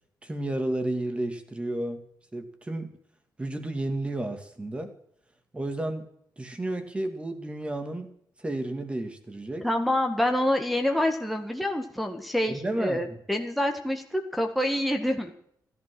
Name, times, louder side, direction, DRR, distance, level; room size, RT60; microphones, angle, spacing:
voice 1, 0.2-2.0 2.3-2.9 3.4-4.9 5.5-6.1 6.4-8.1 8.4-9.7 12.5-13.2, right 1 dB, 15° right, 7 dB, 2.4 m, -32 dB
voice 2, 9.6-15.3, left 1 dB, ahead, 2 dB, 1.8 m, -27 dB
16.0 x 11.5 x 6.2 m, 0.67 s
wide cardioid pair, 140°, 7 cm